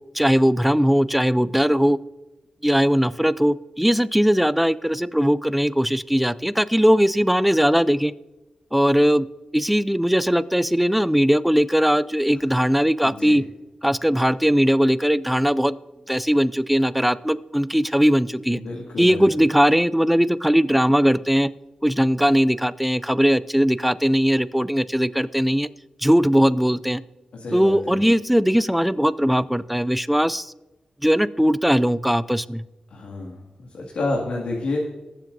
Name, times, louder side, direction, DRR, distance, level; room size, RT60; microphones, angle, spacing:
voice 1, 0.1-2.0 2.6-8.1 8.7-9.3 9.5-13.4 13.8-15.8 16.1-18.6 19.0-21.5 21.8-25.7 26.0-27.0 27.5-30.5 31.0-32.6, equal, 5° right, 16 dB, 0.4 m, -19 dB
voice 2, 13.0-13.4 18.5-19.2 27.3-28.0 32.9-33.4 33.7-34.9, left 2 dB, 80° left, -2 dB, 2.1 m, -29 dB
19.0 x 7.4 x 2.6 m, 1.1 s
wide cardioid pair, 100°, 2 cm